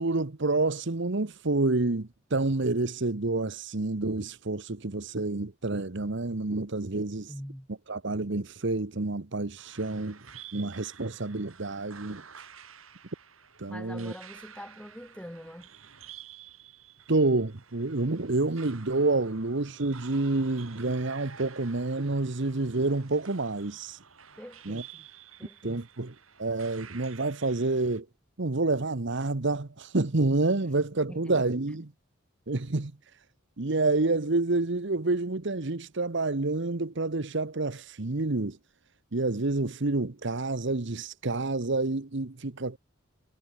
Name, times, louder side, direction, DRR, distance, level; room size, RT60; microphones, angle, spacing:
voice 1, 0.0-7.3 7.9-10.2 10.5-12.2 13.6-14.1 17.1-24.0 24.6-24.8 25.6-26.1 26.4-28.1 28.4-31.9 32.5-32.9 33.6-38.6 39.1-42.8, right 2 dB, 60° right, 1.1 m, -28 dB
voice 2, 7.3-7.7 13.7-15.7 24.4-25.1 25.4-25.9 31.1-31.4, equal, 5° left, 5.5 m, -44 dB
sound 1, 9.6-28.0, right 7 dB, 90° right, 5.7 m, -50 dB
head